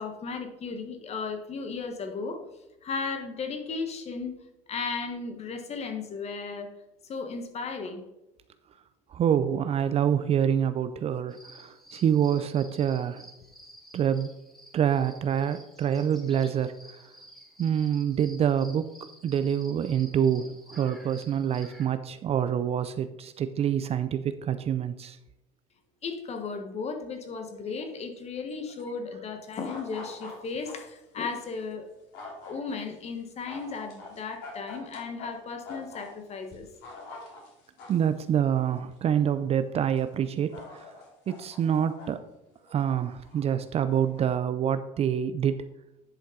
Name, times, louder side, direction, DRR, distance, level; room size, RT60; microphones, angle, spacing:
voice 1, 0.0-2.4 2.8-4.3 4.7-6.7 7.0-8.1 26.0-31.9 32.4-36.7, left 4 dB, 40° left, 6 dB, 1.4 m, -35 dB
voice 2, 9.1-13.2 13.9-14.3 14.7-17.0 17.6-18.9 19.2-25.2 37.9-40.9 41.3-42.2 42.7-45.6, right 9 dB, 35° right, 11 dB, 0.4 m, -26 dB
sound 1, 11.3-21.9, equal, ahead, 1.4 m, -52 dB
sound 2, 29.6-30.8 31.3-31.5 32.1-32.5 33.5-35.3 35.6-36.1 36.5-38.1 38.9-39.0 40.0-40.1 40.5-42.1 42.7-43.4 43.9-44.3, left 3 dB, 70° left, 2.7 m, -44 dB
10.0 x 5.3 x 3.8 m, 0.91 s
supercardioid pair, 90°, 17 cm